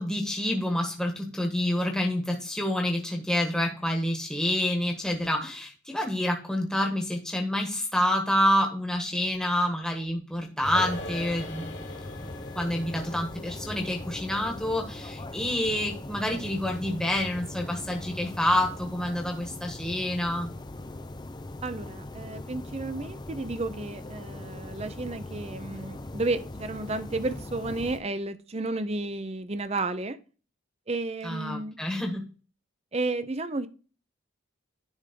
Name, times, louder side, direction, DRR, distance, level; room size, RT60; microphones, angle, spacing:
voice 1, 0.0-11.9 12.2-12.3 12.5-20.5 31.2-32.2, left 1 dB, 5° left, 2 dB, 1.3 m, -28 dB
sound 1, 10.6-28.0, left 2 dB, 20° left, 0.5 m, -40 dB
sound 2, 10.7-17.4 17.7-17.8, left 1 dB, 55° left, 1.9 m, -44 dB
voice 2, 21.6-30.2 30.9-31.8 32.9-33.7, right 2 dB, 30° right, 12 dB, 0.6 m, -32 dB
10.5 x 3.5 x 5.1 m, 0.36 s
head